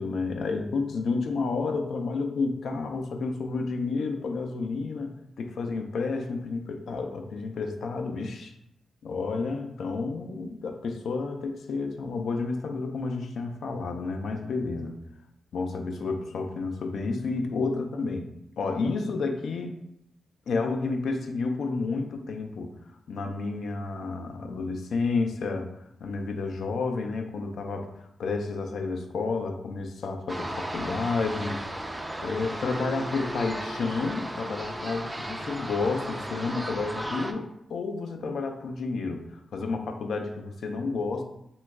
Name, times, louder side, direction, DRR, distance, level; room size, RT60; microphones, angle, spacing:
voice 1, 0.0-5.1 5.4-8.5 9.0-15.0 15.5-18.3 18.6-19.8 20.5-22.7 23.1-25.7 26.0-31.6 32.2-41.2, left 4 dB, 75° left, 4 dB, 0.4 m, -30 dB
sound 1, 30.3-37.3, right 1 dB, 15° right, 0.3 m, -35 dB
3.0 x 2.2 x 3.4 m, 0.80 s
cardioid pair, 95°, 0 cm